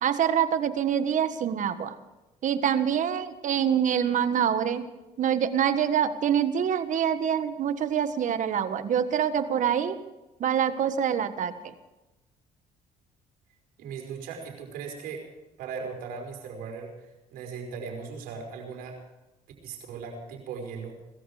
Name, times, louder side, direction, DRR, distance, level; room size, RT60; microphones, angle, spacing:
voice 1, 0.0-2.0 2.4-4.8 5.2-10.0 10.4-11.7, right 8 dB, 60° right, 11 dB, 1.5 m, -25 dB
voice 2, 13.8-15.3 15.6-19.0 19.6-21.0, right 5 dB, 80° right, 2 dB, 5.2 m, -38 dB
20.5 x 14.0 x 5.0 m, 1.0 s
supercardioid pair, 80°, 15 cm